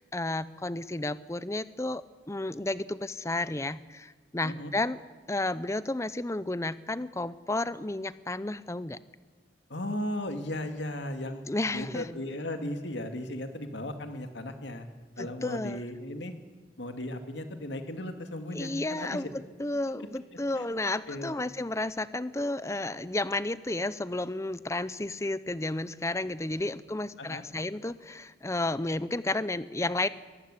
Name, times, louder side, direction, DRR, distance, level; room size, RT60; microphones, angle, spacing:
voice 1, 0.0-5.0 5.3-9.0 11.5-12.1 15.2-15.8 18.5-30.1, left 2 dB, 15° left, 16 dB, 0.6 m, -32 dB
voice 2, 9.7-11.4 11.7-14.9 15.2-16.3 16.8-19.2 20.6-20.7 21.1-21.3 27.2-27.4, left 1 dB, 70° left, 6 dB, 2.2 m, -36 dB
22.0 x 15.5 x 9.9 m, 1.4 s
head